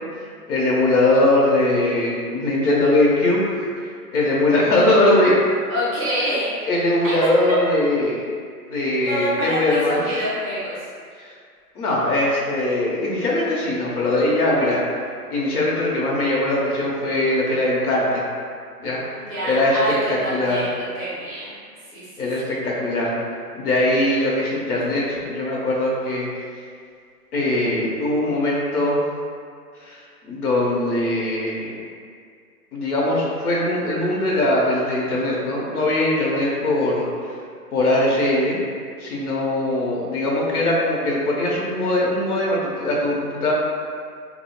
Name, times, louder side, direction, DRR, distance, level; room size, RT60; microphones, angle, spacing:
voice 1, 0.1-5.4 6.2-6.3 6.7-8.3 8.7-10.0 11.2-11.3 11.8-14.8 15.3-18.2 18.8-19.1 19.4-20.7 22.2-23.1 23.5-26.3 27.3-29.0 29.8-31.8 32.7-37.1 37.7-38.6 39.0-43.5, left 1 dB, 65° left, -4 dB, 0.8 m, -21 dB
voice 2, 5.7-6.6 9.1-10.8 19.1-21.5 21.9-22.2, equal, 20° right, -9 dB, 0.6 m, -27 dB
2.7 x 2.0 x 2.8 m, 2.1 s
hypercardioid pair, 165°, 48 cm